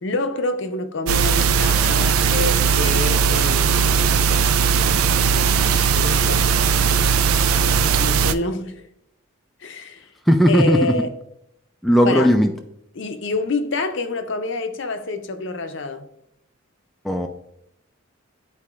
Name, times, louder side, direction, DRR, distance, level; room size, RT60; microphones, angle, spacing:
voice 1, 0.0-4.2 5.2-6.5 7.7-8.9 9.6-10.0 10.5-11.2 12.0-12.3 13.0-16.1, left 2 dB, 60° left, 0.6 m, -27 dB
sound 1, 1.1-8.3, right 6 dB, 90° right, 0.4 m, -18 dB
voice 2, 10.3-10.9 11.8-12.5 17.0-17.3, equal, ahead, 0.3 m, -16 dB
11.5 x 4.1 x 2.4 m
head